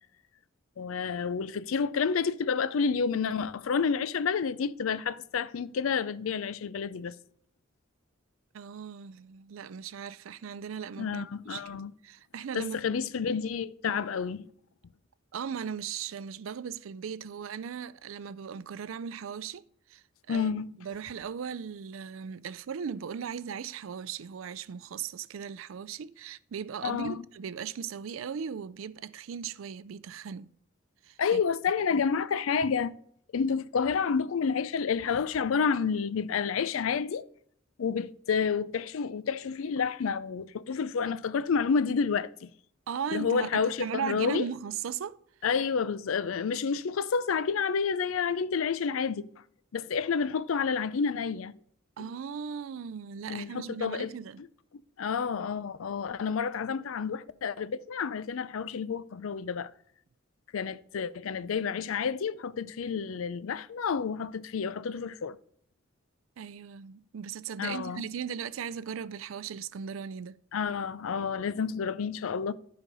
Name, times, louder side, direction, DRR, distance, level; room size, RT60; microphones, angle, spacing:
voice 1, 0.8-7.1 11.0-11.9 12.5-14.5 20.3-20.7 26.8-27.2 31.2-32.9 33.3-37.2 37.8-42.5 43.1-44.4 45.4-49.3 49.7-51.6 53.3-54.5 55.0-59.7 60.5-65.4 67.6-68.0 70.5-72.5, left 6 dB, 80° left, 0.4 m, -29 dB
voice 2, 8.5-12.9 15.3-19.6 19.9-20.5 20.8-30.5 31.0-31.4 31.9-32.0 42.9-45.2 52.0-54.4 66.4-70.4, right 7 dB, 75° right, 0.4 m, -38 dB
11.0 x 5.2 x 5.3 m
head